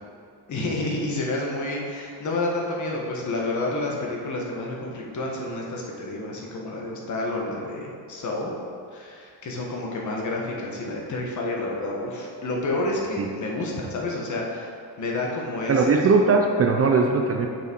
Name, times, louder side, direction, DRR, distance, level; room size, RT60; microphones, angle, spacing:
voice 1, 0.5-8.5 8.9-14.7 15.0-16.0, left 2 dB, 45° left, -2 dB, 1.4 m, -29 dB
voice 2, 15.7-17.5, right 4 dB, 35° right, 2 dB, 0.5 m, -19 dB
7.2 x 6.2 x 4.5 m, 2.3 s
cardioid pair, 155°, 42 cm